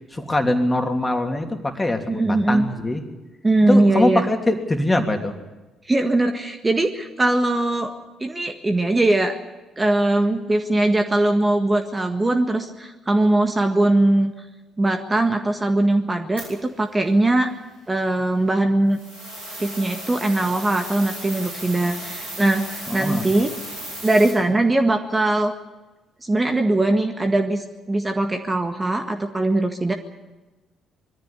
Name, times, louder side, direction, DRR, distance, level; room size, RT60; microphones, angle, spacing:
voice 1, 0.1-3.0 3.7-5.4 22.9-23.3, left 1 dB, 15° left, 4 dB, 3.0 m, -22 dB
voice 2, 2.1-2.7 3.4-4.3 5.9-7.9 8.2-9.3 9.8-14.3 14.8-17.5 17.9-19.0 19.6-23.5 24.0-25.5 26.2-29.9, right 2 dB, 20° right, 5 dB, 1.7 m, -20 dB
sound 1, 16.4-16.5 18.9-24.3, right 1 dB, 90° right, 7.5 m, -35 dB
22.0 x 14.0 x 9.9 m, 1.2 s
hypercardioid pair, 45°, 0 cm